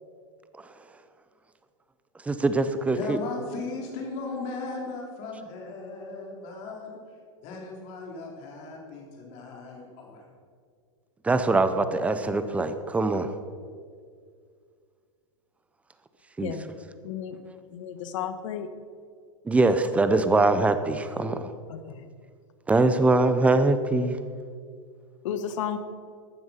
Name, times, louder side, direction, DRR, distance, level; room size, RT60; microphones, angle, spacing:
voice 1, 2.3-3.2 11.2-13.3 16.4-16.5 19.5-21.5 22.7-24.2, right 2 dB, 10° right, 0.7 m, -23 dB
voice 2, 2.9-7.0 7.4-10.2, left 3 dB, 45° left, 3.6 m, -37 dB
voice 3, 17.0-17.4 17.7-18.7 21.7-21.8 25.2-25.8, left 8 dB, 70° left, 1.3 m, -32 dB
14.5 x 9.3 x 5.7 m
supercardioid pair, 140°, 17 cm